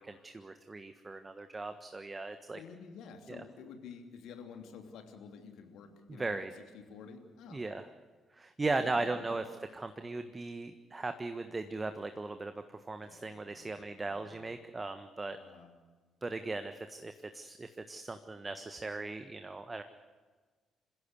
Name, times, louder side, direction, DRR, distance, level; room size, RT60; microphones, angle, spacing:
voice 1, 0.0-2.6 6.1-6.5 7.5-7.9 8.3-15.4 16.2-19.8, right 3 dB, 25° right, 9 dB, 1.4 m, -38 dB
voice 2, 2.5-7.6 8.6-9.5 13.0-14.5 15.3-15.7, left 6 dB, 60° left, 4 dB, 3.0 m, -51 dB
28.0 x 15.5 x 8.4 m, 1.4 s
figure-of-eight pair, 40°, 0 cm